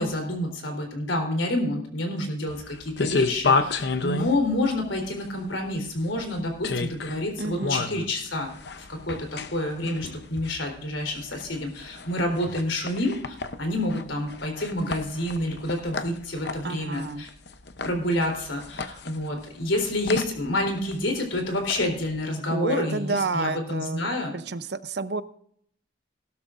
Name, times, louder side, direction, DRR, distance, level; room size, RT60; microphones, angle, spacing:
voice 1, 0.0-8.5 8.9-17.3 17.8-24.3, left 1 dB, 90° left, 3 dB, 3.8 m, -28 dB
sound 1, 2.5-22.2, left 4 dB, 60° left, 0.7 m, -32 dB
voice 2, 7.4-7.8 16.6-17.2 22.5-25.2, right 3 dB, 60° right, 13 dB, 0.7 m, -30 dB
17.0 x 12.5 x 2.5 m, 0.66 s
head